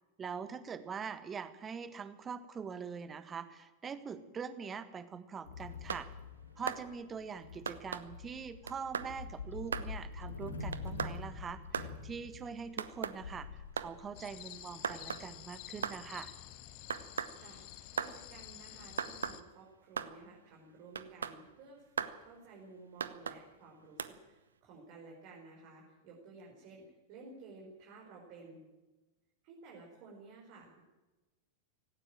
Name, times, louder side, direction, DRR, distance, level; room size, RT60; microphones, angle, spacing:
voice 1, 0.2-6.1 6.6-16.3, right 6 dB, 20° right, 13 dB, 1.5 m, -43 dB
sound 1, 5.4-15.6, left 4 dB, 70° left, 2.0 m, -46 dB
sound 2, 5.7-6.1 6.7-6.8 7.7-8.1 8.7-9.1 9.7-9.9 10.7-11.2 11.7-11.9 12.8-13.2 13.8-13.9 14.8-15.3 15.8-16.0 16.9-17.4 18.0-18.2 19.0-19.4 20.0-20.1 21.0-21.4 22.0-22.2 23.0-23.4 24.0-24.1, right 7 dB, 70° right, 1.0 m, -37 dB
sound 3, 14.1-19.4, left 13 dB, 45° left, 1.4 m, -50 dB
voice 2, 17.9-26.8 27.1-28.6 29.4-30.8, right 3 dB, 45° right, -1 dB, 5.1 m, -54 dB
17.5 x 17.5 x 9.0 m, 1.1 s
figure-of-eight pair, 90°, 0 cm